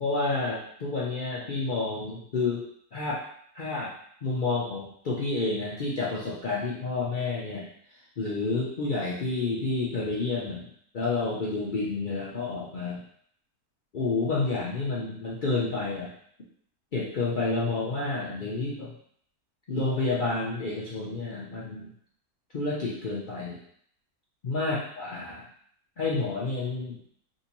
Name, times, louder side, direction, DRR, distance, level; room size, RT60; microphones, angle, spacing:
voice 1, 0.0-2.7 2.9-3.2 3.5-3.9 4.2-7.7 8.2-10.7 10.9-13.0 13.9-16.1 16.9-18.9 19.7-21.9 22.5-23.6 24.4-25.4 26.0-27.0, left 3 dB, 65° left, -6 dB, 0.5 m, -29 dB
3.7 x 2.6 x 2.9 m, 0.64 s
omnidirectional pair, 1.6 m